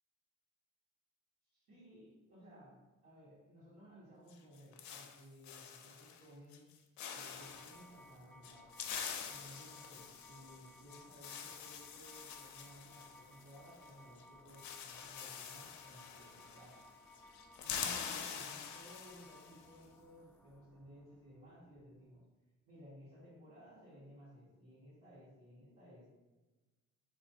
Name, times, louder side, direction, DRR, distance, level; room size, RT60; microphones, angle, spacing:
voice 1, 1.5-6.7 7.1-8.9 9.2-16.8 17.6-22.2 22.6-26.1, equal, 80° right, -12 dB, 1.4 m, -58 dB
sound 1, 4.3-6.2 6.5-6.7 7.0-7.8 8.4-13.9 14.2-14.3 14.5-16.9 17.1-19.6, left 7 dB, 70° left, 0.4 m, -46 dB
sound 2, 7.3-22.2, left 1 dB, 5° left, 0.4 m, -61 dB
3.4 x 2.7 x 2.7 m, 1.2 s
cardioid pair, 90°, 30 cm